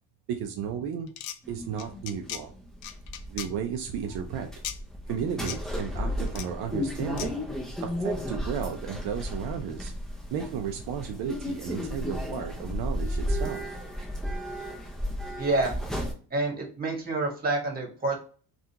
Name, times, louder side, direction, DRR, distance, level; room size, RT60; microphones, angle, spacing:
voice 1, 0.3-1.1 1.5-2.5 3.3-4.5 5.1-7.4 7.8-9.9 10.3-13.8, right 7 dB, 70° right, 4 dB, 0.6 m, -33 dB
sound 1, 1.1-1.4 1.8-2.4 2.8-3.5 4.6-4.8 5.5-5.6 6.3-6.5 7.2-7.3, left 10 dB, 70° left, 0.5 m, -36 dB
sound 2, 1.4-16.1, equal, ahead, 0.6 m, -34 dB
voice 2, 15.4-15.7 16.3-18.2, right 2 dB, 20° right, -1 dB, 1.4 m, -28 dB
3.5 x 2.4 x 2.7 m, 0.42 s
cardioid pair, 120°, 39 cm